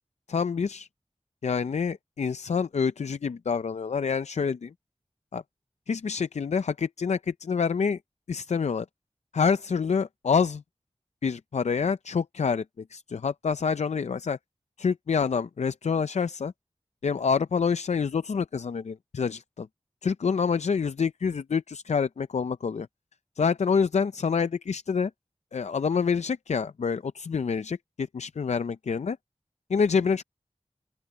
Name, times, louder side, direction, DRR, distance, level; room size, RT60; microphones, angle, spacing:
voice 1, 0.3-0.9 1.4-4.7 5.3-5.4 5.9-8.0 8.3-8.9 9.3-10.6 11.2-14.4 14.8-16.5 17.0-19.7 20.0-22.9 23.4-25.1 25.5-29.2 29.7-30.2, left 5 dB, 85° left, 0.4 m, -27 dB
open air
wide cardioid pair, 55°, 11 cm